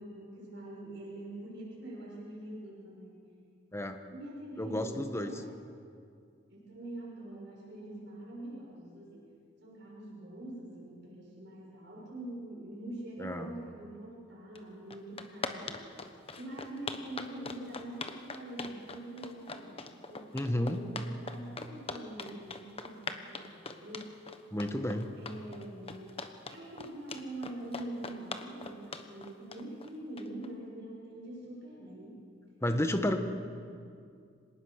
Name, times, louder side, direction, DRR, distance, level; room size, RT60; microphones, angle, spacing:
voice 1, 0.0-3.3 4.1-5.5 6.5-9.3 9.6-15.8 16.4-19.8 20.1-24.2 25.1-26.2 26.5-32.2, right 1 dB, 65° right, -4 dB, 6.7 m, -44 dB
voice 2, 4.6-5.3 13.2-13.5 20.3-20.8 24.5-25.1 32.6-33.2, left 1 dB, 15° left, 6 dB, 1.3 m, -31 dB
sound 1, 14.5-14.6 14.9-30.5, left 4 dB, 30° left, 1.2 m, -41 dB
25.5 x 18.5 x 6.6 m, 2.3 s
head